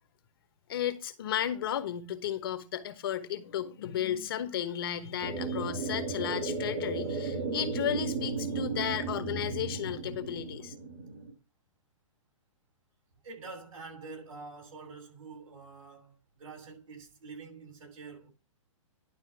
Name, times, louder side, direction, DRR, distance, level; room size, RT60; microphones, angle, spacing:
voice 1, 0.7-10.7, left 10 dB, 45° left, 1.1 m, -34 dB
sound 1, 5.2-11.3, right 4 dB, 45° right, 2.1 m, -35 dB
voice 2, 13.2-18.3, right 4 dB, 80° right, 7.7 m, -47 dB
11.5 x 4.2 x 7.0 m
hypercardioid pair, 170°, 17 cm